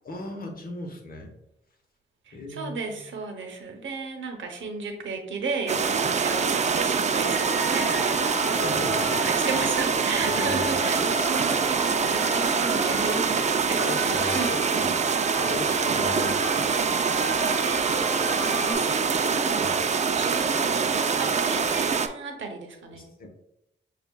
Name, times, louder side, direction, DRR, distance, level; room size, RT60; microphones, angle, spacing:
voice 1, 0.0-1.3 2.3-3.0 8.6-9.4 10.2-10.9 12.9-13.0 13.8-15.0 15.4-16.7 19.6-19.8 22.9-23.3, left 2 dB, 45° left, 2 dB, 1.0 m, -37 dB
voice 2, 2.3-14.5 17.3-19.7 20.2-23.3, right 4 dB, 80° right, 3 dB, 0.8 m, -34 dB
sound 1, 5.7-22.1, right 5 dB, 35° right, 0.4 m, -25 dB
sound 2, 7.2-18.7, equal, 15° left, 1.1 m, -35 dB
7.0 x 2.4 x 2.2 m, 0.85 s
cardioid pair, 70°, 20 cm